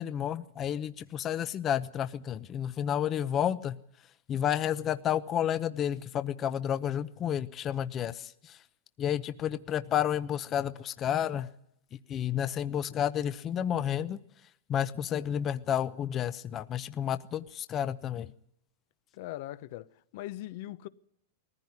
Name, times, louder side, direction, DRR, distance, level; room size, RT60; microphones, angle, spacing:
voice 1, 0.0-3.8 4.3-8.6 9.0-11.5 12.1-14.2 14.7-18.3, left 10 dB, 30° left, 0.8 m, -31 dB
voice 2, 19.1-20.9, left 15 dB, 60° left, 0.9 m, -41 dB
20.0 x 15.0 x 9.8 m
hypercardioid pair, 125°, 0 cm